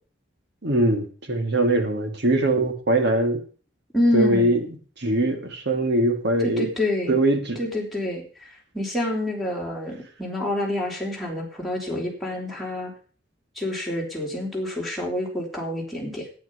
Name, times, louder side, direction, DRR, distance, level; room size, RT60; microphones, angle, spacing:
voice 1, 0.6-3.4 4.1-4.6 5.0-6.7 7.1-7.6, right 1 dB, 60° right, 5 dB, 2.3 m, -22 dB
voice 2, 3.9-4.5 6.4-7.2 7.6-8.5 8.7-12.9 13.6-16.3, left 1 dB, ahead, -3 dB, 3.8 m, -27 dB
9.3 x 8.6 x 8.2 m, 0.42 s
head